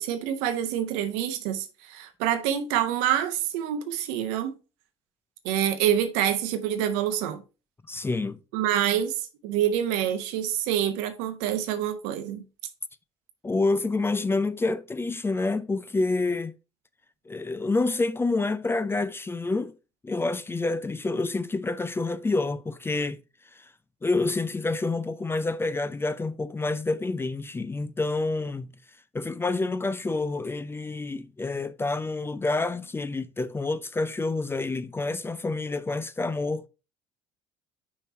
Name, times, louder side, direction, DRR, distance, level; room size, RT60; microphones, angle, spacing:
voice 1, 0.0-4.5 5.4-7.4 8.5-12.5, right 10 dB, 70° right, 1.0 m, -27 dB
voice 2, 7.9-8.4 13.4-16.5 17.3-19.7 20.0-23.2 23.5-23.7 24.0-28.7 29.1-36.7, left 3 dB, 15° left, 0.5 m, -28 dB
5.7 x 4.5 x 4.4 m
hypercardioid pair, 65°, 14 cm